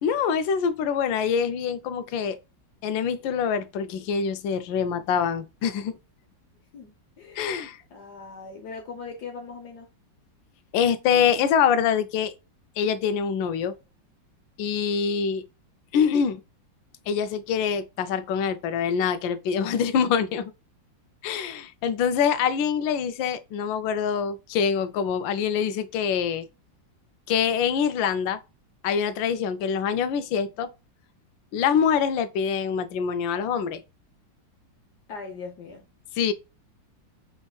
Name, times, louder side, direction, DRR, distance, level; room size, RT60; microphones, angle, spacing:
voice 1, 0.0-2.4 2.8-6.0 7.4-7.8 10.7-12.3 12.8-13.7 14.6-15.4 15.9-16.4 17.1-20.5 21.2-26.5 27.3-28.4 28.8-30.7 31.5-33.8 36.2-36.3, left 7 dB, 85° left, 1.3 m, -25 dB
voice 2, 6.7-7.5 7.9-9.9 35.1-35.8, left 4 dB, 65° left, 1.4 m, -40 dB
5.2 x 3.6 x 2.3 m
omnidirectional pair, 2.0 m